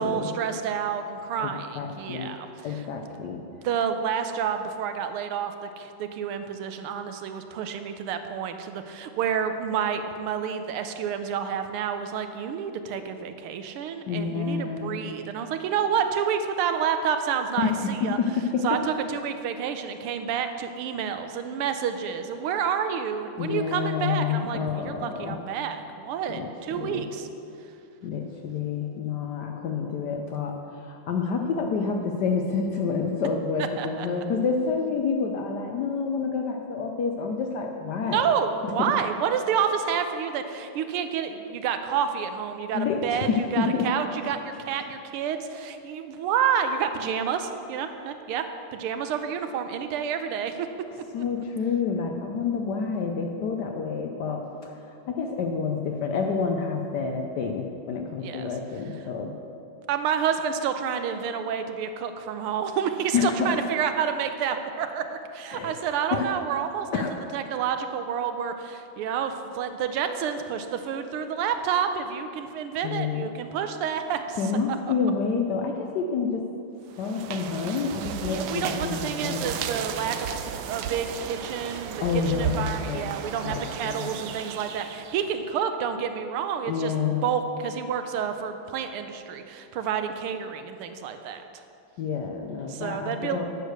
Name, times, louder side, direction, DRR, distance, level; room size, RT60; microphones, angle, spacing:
voice 1, 0.0-3.1 3.6-18.2 18.6-27.3 33.8-34.1 38.1-48.5 48.7-50.7 58.2-58.5 59.9-67.0 67.3-74.4 78.2-91.4 92.7-93.4, right 7 dB, 90° right, 8 dB, 1.6 m, -29 dB
voice 2, 1.4-2.3 2.6-3.4 14.1-15.0 17.6-18.6 23.4-25.4 26.3-27.1 28.0-38.3 38.6-39.0 42.7-43.9 51.1-59.3 63.1-63.6 65.5-65.8 66.1-66.3 66.9-67.1 72.8-73.2 74.4-76.4 77.0-79.5 82.0-83.1 83.4-84.1 86.7-87.2 92.0-93.5, left 5 dB, 70° left, 3 dB, 1.0 m, -28 dB
sound 1, 76.9-85.3, right 8 dB, 75° right, 1.2 m, -34 dB
9.5 x 6.5 x 6.5 m, 2.7 s
omnidirectional pair, 2.4 m